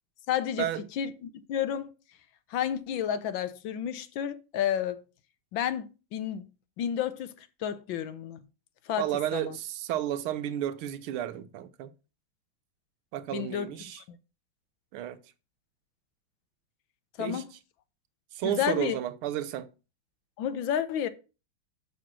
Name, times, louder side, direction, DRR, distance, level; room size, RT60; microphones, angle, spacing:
voice 1, 0.3-0.7 1.0-1.9 2.5-5.0 5.5-6.5 6.8-7.3 7.6-8.4 8.9-9.1 9.3-9.5 13.3-14.0 17.2-17.5 18.4-19.0 20.4-21.1, left 9 dB, 70° left, 1.4 m, -31 dB
voice 2, 9.0-11.9 13.1-14.0 14.9-15.2 17.2-17.4 18.3-19.7, right 11 dB, 90° right, 1.6 m, -32 dB
6.3 x 6.1 x 6.0 m
omnidirectional pair, 2.3 m